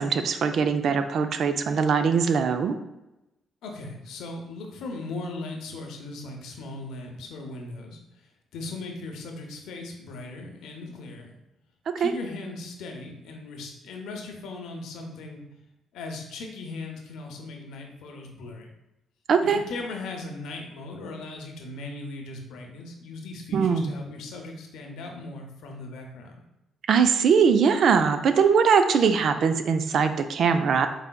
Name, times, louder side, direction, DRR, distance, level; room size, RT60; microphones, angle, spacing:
voice 1, 0.0-2.8 11.9-12.1 19.3-19.6 23.5-24.0 26.9-30.9, right 6 dB, 60° right, 9 dB, 0.3 m, -21 dB
voice 2, 3.6-8.2 8.5-11.3 12.0-15.4 15.9-18.7 19.4-26.4, left 2 dB, 85° left, 2 dB, 0.7 m, -38 dB
4.8 x 3.3 x 2.2 m, 0.94 s
cardioid pair, 90°, 0 cm